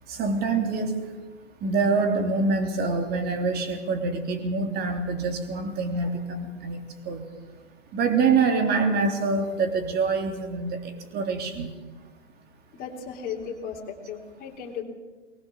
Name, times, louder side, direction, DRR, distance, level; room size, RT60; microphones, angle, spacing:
voice 1, 0.1-1.0 1.6-6.8 7.0-7.2 7.9-11.7, right 4 dB, 25° right, 5 dB, 3.3 m, -25 dB
voice 2, 12.7-14.8, left 7 dB, 25° left, -2 dB, 3.7 m, -36 dB
23.0 x 20.0 x 7.2 m, 1.3 s
hypercardioid pair, 125°, 36 cm